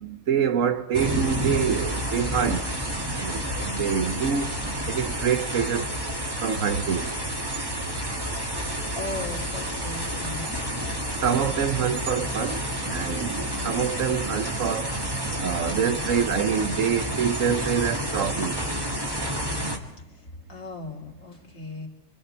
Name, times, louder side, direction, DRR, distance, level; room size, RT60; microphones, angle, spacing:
voice 1, 0.0-2.7 3.1-4.5 4.9-5.9 6.4-7.1 11.2-12.6 12.9-14.9 15.4-18.6, right 7 dB, 85° right, 1.4 m, -26 dB
sound 1, 0.9-19.8, right 1 dB, 20° right, 1.8 m, -30 dB
voice 2, 8.4-11.0 19.9-20.1 20.5-21.9, left 2 dB, 85° left, 3.0 m, -38 dB
25.5 x 24.5 x 4.4 m
omnidirectional pair, 1.3 m